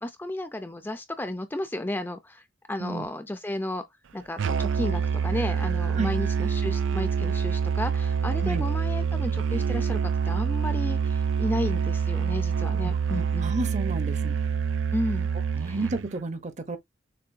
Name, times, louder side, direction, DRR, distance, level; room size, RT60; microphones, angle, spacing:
voice 1, 0.0-2.4 2.7-3.8 4.1-10.0 10.3-13.5 14.9-15.3 15.6-15.8, left 1 dB, 10° left, 0.5 m, -33 dB
Musical instrument, 4.4-16.1, right 6 dB, 65° right, 0.4 m, -26 dB
voice 2, 12.8-14.4 15.6-16.8, right 2 dB, 35° right, 0.7 m, -32 dB
6.7 x 2.7 x 2.6 m
head